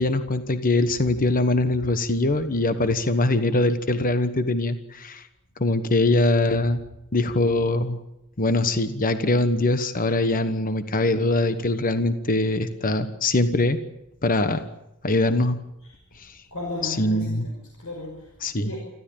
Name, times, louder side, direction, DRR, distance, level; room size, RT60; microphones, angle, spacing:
voice 1, 0.0-5.2 5.6-6.8 7.1-8.0 8.4-13.8 14.2-14.6 15.0-15.6 16.2-16.3 16.8-17.5 18.4-18.7, left 2 dB, 40° left, 10 dB, 1.2 m, -22 dB
voice 2, 16.5-18.3 18.6-18.8, left 1 dB, 70° left, 0 dB, 6.0 m, -35 dB
26.0 x 15.5 x 8.9 m, 0.87 s
head